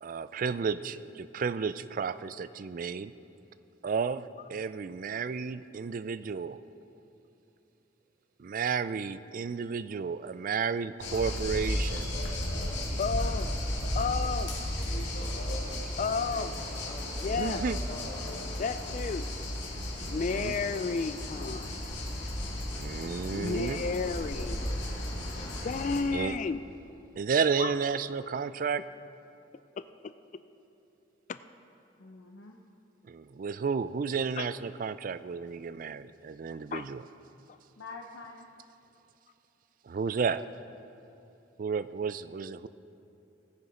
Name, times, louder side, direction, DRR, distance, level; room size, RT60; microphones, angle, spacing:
voice 1, 0.0-3.1 3.8-6.6 8.4-12.1 17.4-17.8 20.0-20.5 22.8-23.9 26.1-26.4 27.2-28.8 33.0-37.0 39.8-40.4 41.6-42.7, right 5 dB, 45° right, 15 dB, 0.3 m, -32 dB
sound 1, 11.0-26.0, left 1 dB, 70° left, 2.5 m, -34 dB
voice 2, 13.0-13.5 13.9-14.5 16.0-16.5 17.2-17.6 18.6-19.3 20.1-21.7 23.4-24.6 25.6-26.6 27.6-27.7 29.8-30.1 31.3-31.4 34.4-34.5 36.7-36.9, left 4 dB, 40° left, 12 dB, 0.3 m, -32 dB
voice 3, 32.0-32.6 37.8-38.5, left 3 dB, 85° left, 1 dB, 0.8 m, -47 dB
19.0 x 6.8 x 5.0 m, 2.9 s
head